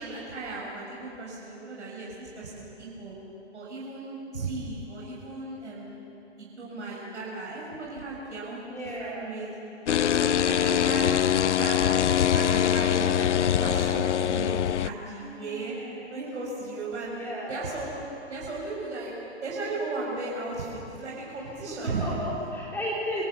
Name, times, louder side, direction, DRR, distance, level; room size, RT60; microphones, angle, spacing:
voice 1, 0.0-3.1 3.5-6.0 6.4-9.5 10.1-11.2 11.5-11.8 12.3-15.8 16.1-17.2 17.5-17.9 18.3-19.2 19.4-22.1, right 3 dB, 80° right, -5 dB, 7.2 m, -36 dB
voice 2, 8.7-9.3 15.2-16.1 17.2-17.7 21.7-23.2, equal, 5° left, -5 dB, 3.6 m, -35 dB
sound 1, 9.9-14.9, left 9 dB, 85° left, 0.7 m, -23 dB
27.5 x 18.0 x 7.2 m, 2.9 s
hypercardioid pair, 150°, 35 cm